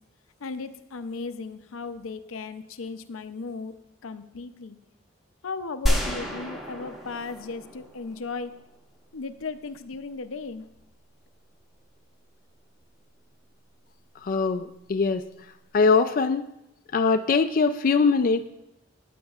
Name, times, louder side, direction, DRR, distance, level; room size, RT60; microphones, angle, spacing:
voice 1, 0.4-3.7 4.0-4.8 5.4-8.6 9.1-10.7, left 4 dB, 90° left, 10 dB, 0.6 m, -36 dB
sound 1, 5.9-8.8, equal, ahead, 1.2 m, -29 dB
voice 2, 14.2-15.3 15.7-16.5 16.9-18.5, left 4 dB, 45° left, 8 dB, 0.4 m, -22 dB
14.0 x 9.3 x 2.4 m, 0.87 s
head